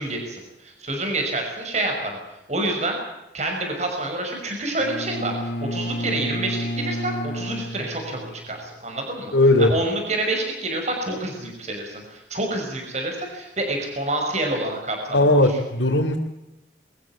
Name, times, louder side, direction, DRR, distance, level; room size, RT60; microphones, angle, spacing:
voice 1, 0.0-2.2 2.5-3.0 3.3-9.3 9.6-15.6, right 2 dB, 40° right, 2 dB, 5.9 m, -28 dB
Bowed string instrument, 4.8-8.6, equal, 50° left, 2.0 m, -31 dB
voice 2, 9.3-9.7 15.1-16.2, left 2 dB, 85° left, -1 dB, 3.1 m, -17 dB
24.5 x 15.0 x 8.7 m, 0.93 s
head